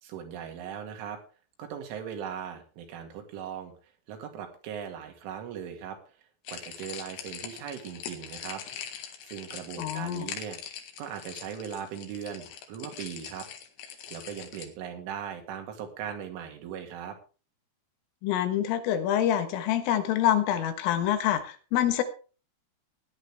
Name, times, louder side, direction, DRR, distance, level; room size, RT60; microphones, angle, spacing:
voice 1, 0.0-1.2 1.6-3.7 4.1-6.0 6.5-8.6 9.2-10.6 11.0-13.5 14.1-17.2, right 8 dB, 75° right, 5 dB, 4.6 m, -39 dB
sound 1, 6.4-14.7, left 8 dB, 70° left, 3.8 m, -42 dB
voice 2, 9.8-10.3 18.2-22.0, left 11 dB, 90° left, 9 dB, 4.1 m, -26 dB
17.0 x 10.5 x 3.5 m, 0.35 s
omnidirectional pair, 5.6 m